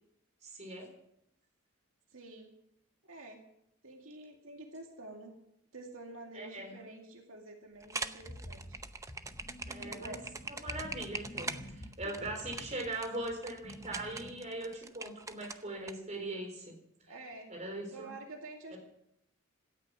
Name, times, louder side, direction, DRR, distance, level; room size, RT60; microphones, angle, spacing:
voice 1, 0.4-0.9 6.3-6.7 9.7-10.2 10.5-16.7 17.5-18.1 18.7-18.8, right 2 dB, 35° right, 3 dB, 3.9 m, -40 dB
voice 2, 2.1-2.5 3.0-3.4 3.8-5.3 5.7-8.8 9.8-10.3 12.0-12.1 17.1-17.5 17.9-18.8, right 2 dB, 70° right, 2 dB, 2.3 m, -48 dB
sound 1, 7.8-15.9, right 4 dB, 15° right, 0.7 m, -42 dB
sound 2, 8.2-14.3, equal, 35° left, 2.1 m, -48 dB
17.5 x 13.0 x 6.3 m, 0.80 s
head